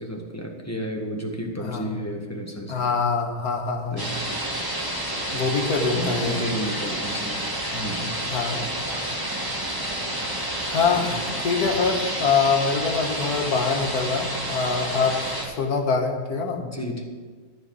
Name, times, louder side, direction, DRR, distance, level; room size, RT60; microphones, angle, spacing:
voice 1, 0.0-2.8 3.9-4.4 5.9-7.4 7.7-8.1 10.9-11.2 16.6-17.0, equal, 10° left, 1 dB, 1.4 m, -32 dB
voice 2, 2.7-4.0 5.3-6.4 8.3-8.7 10.7-16.6, left 5 dB, 80° left, 3 dB, 1.9 m, -24 dB
sound 1, 4.0-15.4, right 1 dB, 15° right, 2.0 m, -29 dB
14.0 x 5.1 x 8.7 m, 1.5 s
omnidirectional pair, 1.6 m